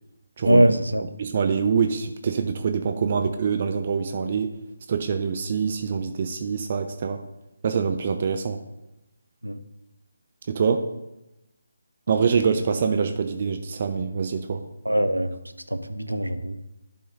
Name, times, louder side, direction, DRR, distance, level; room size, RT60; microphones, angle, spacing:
voice 1, 0.4-1.0 9.4-9.6 14.8-15.3 15.7-16.6, right 1 dB, 85° right, 9 dB, 0.7 m, -21 dB
voice 2, 1.2-4.5 4.9-7.2 7.6-8.6 10.5-10.9 12.1-14.6, right 6 dB, 35° right, 6 dB, 0.5 m, -25 dB
11.0 x 3.9 x 3.9 m, 0.92 s
figure-of-eight pair, 150°, 0 cm